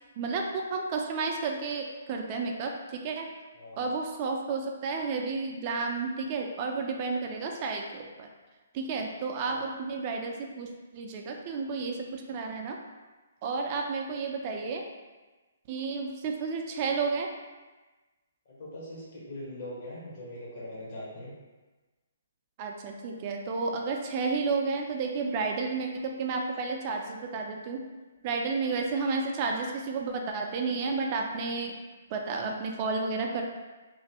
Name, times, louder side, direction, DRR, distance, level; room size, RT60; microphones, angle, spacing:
voice 1, 0.2-3.3 3.8-8.3 8.7-12.8 13.4-14.8 15.7-17.3 22.6-27.8 28.2-31.7 32.1-33.4, right 4 dB, 35° right, 2 dB, 0.3 m, -31 dB
voice 2, 18.5-21.3, left 1 dB, 55° left, -7 dB, 1.1 m, -41 dB
3.0 x 2.5 x 2.8 m, 1.2 s
hypercardioid pair, 150°, 0 cm